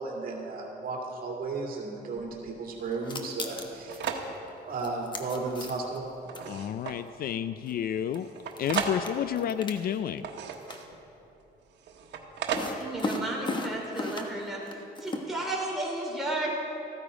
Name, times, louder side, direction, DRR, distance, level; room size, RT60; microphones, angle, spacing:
voice 1, 0.0-4.0 4.6-6.1, right 3 dB, 55° right, -1 dB, 2.3 m, -34 dB
sound 1, 2.2-3.0 3.5-4.4 5.2-5.3 5.9-7.1 8.2-9.1 9.9-11.1 11.8-12.9, right 6 dB, 90° right, 1.2 m, -36 dB
sound 2, 2.9-4.1 4.8-6.0 6.3-6.4 7.7-7.8 8.1-8.2 8.5-10.2 10.5-10.8 12.5-14.4 14.7-15.2, left 2 dB, 25° left, 1.1 m, -35 dB
voice 2, 6.5-8.3 8.6-10.3, left 9 dB, 60° left, 13 dB, 0.4 m, -30 dB
voice 3, 12.8-14.6 15.0-16.5, right 2 dB, ahead, -4 dB, 3.1 m, -33 dB
14.0 x 13.5 x 5.0 m, 2.9 s
cardioid pair, 150°, 18 cm